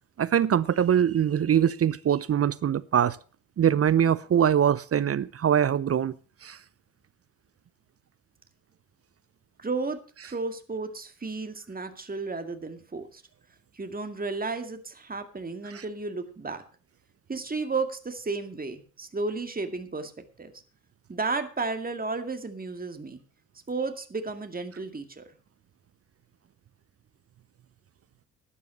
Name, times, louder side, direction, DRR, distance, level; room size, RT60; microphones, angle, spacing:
voice 1, 0.2-3.2 3.6-6.2 6.4-6.6 15.7-15.8, right 9 dB, 35° right, 0.6 m, -23 dB
voice 2, 9.6-10.0 10.2-13.2 13.7-16.6 17.3-20.1 20.4-20.5 21.1-23.2 23.7-25.3, right 3 dB, 20° right, 2.1 m, -33 dB
12.0 x 9.8 x 6.0 m
hypercardioid pair, 50°, 39 cm